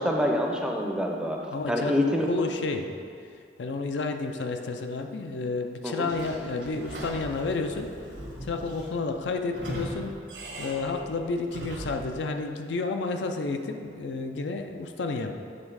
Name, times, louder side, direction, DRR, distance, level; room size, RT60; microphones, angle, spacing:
voice 1, 0.0-2.3 5.8-6.1, left 1 dB, 5° right, 1 dB, 0.5 m, -26 dB
voice 2, 1.5-2.9 3.6-8.2 8.4-10.1 10.6-15.3, left 3 dB, 80° left, 5 dB, 0.5 m, -31 dB
Sliding door / Squeak, 6.1-12.1, right 1 dB, 90° right, 1.4 m, -40 dB
7.6 x 3.5 x 4.7 m, 2.4 s
head